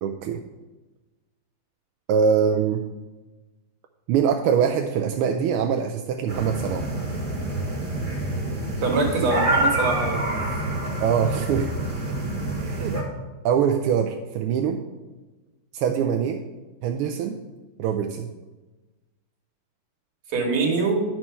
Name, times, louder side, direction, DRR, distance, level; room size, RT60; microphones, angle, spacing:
voice 1, 0.0-0.4 2.1-2.8 4.1-6.9 11.0-11.7 12.6-13.0 13.4-14.8 15.7-16.4 16.8-17.4 17.8-18.3, right 7 dB, 90° right, 3 dB, 1.5 m, -23 dB
sound 1, 6.3-13.0, right 1 dB, 25° right, 1.6 m, -27 dB
voice 2, 8.8-10.3 10.7-10.8 20.3-21.0, right 3 dB, 75° right, 1 dB, 2.4 m, -24 dB
9.9 x 4.6 x 5.5 m, 1.2 s
omnidirectional pair, 2.3 m